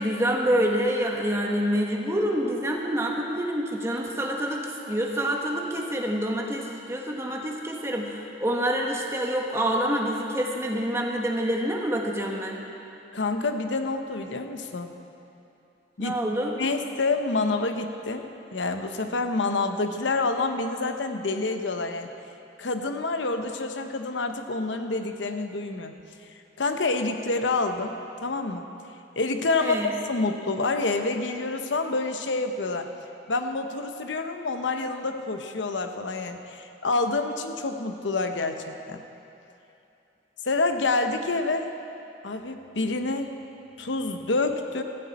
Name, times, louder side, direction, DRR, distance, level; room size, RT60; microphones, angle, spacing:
voice 1, 0.0-12.6 16.0-16.5 29.6-29.9, equal, 15° right, 0 dB, 1.4 m, -27 dB
voice 2, 13.1-15.0 16.0-16.2 16.6-22.1 22.6-25.9 26.6-27.9 28.2-28.7 29.2-29.8 30.1-32.9 33.3-39.0 40.4-41.7 42.2-43.3 43.8-44.8, left 3 dB, 75° left, 6 dB, 0.9 m, -27 dB
15.5 x 14.5 x 4.2 m, 2.8 s
head